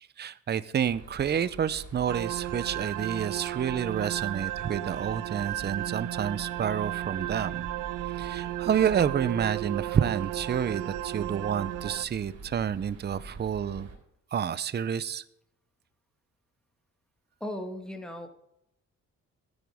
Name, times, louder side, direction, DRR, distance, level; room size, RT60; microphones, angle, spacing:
voice 1, 0.0-7.7 8.2-13.9 14.3-15.2, right 8 dB, 35° right, 16 dB, 0.6 m, -29 dB
sound 1, 0.8-13.9, right 3 dB, 65° right, 3.8 m, -45 dB
sound 2, 2.1-12.1, right 14 dB, 90° right, 0.6 m, -34 dB
voice 2, 17.4-18.3, left 1 dB, ahead, 5 dB, 1.8 m, -36 dB
13.0 x 10.5 x 3.5 m, 0.79 s
cardioid pair, 90°, 30 cm